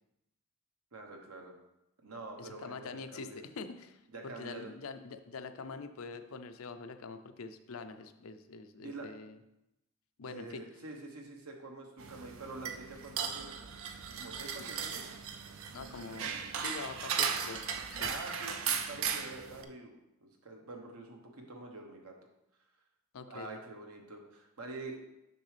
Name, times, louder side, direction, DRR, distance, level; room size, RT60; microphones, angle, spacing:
voice 1, 0.9-1.5 2.0-3.4 4.1-4.7 8.8-9.1 10.2-13.6 14.2-15.0 18.0-19.9 20.2-22.1 23.3-25.0, right 2 dB, 85° right, 2 dB, 1.1 m, -46 dB
voice 2, 2.4-9.4 10.2-10.6 14.6-14.7 15.7-18.1 23.1-23.6, left 4 dB, 70° left, 9 dB, 0.5 m, -45 dB
sound 1, 12.0-19.6, right 7 dB, 65° right, 0.5 m, -37 dB
6.7 x 6.0 x 3.3 m, 0.89 s
head